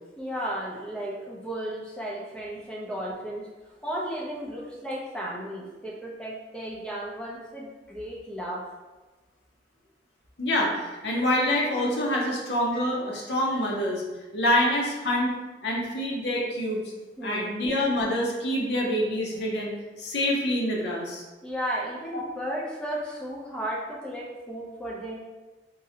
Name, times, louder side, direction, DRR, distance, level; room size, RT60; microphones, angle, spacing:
voice 1, 0.2-3.5 3.8-8.6 13.5-13.6 17.2-17.5 21.4-25.2, right 1 dB, 5° left, -4 dB, 0.4 m, -34 dB
voice 2, 10.4-14.0 14.3-15.4 15.6-16.8 17.2-21.3, left 1 dB, 70° left, -2 dB, 0.5 m, -26 dB
3.7 x 2.1 x 2.7 m, 1.2 s
head